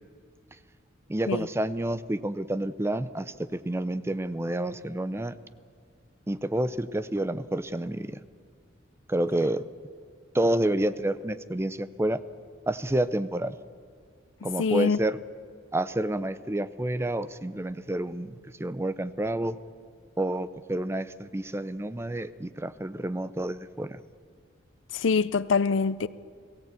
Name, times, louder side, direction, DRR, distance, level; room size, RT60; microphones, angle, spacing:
voice 1, 1.1-5.4 6.3-8.2 9.1-9.6 10.3-12.2 12.7-13.6 14.4-15.2 15.7-19.6 20.2-24.0, right 1 dB, 15° right, 0.5 m, -29 dB
voice 2, 14.6-15.0 24.9-26.1, left 5 dB, 80° left, 0.6 m, -24 dB
21.5 x 16.5 x 8.3 m
head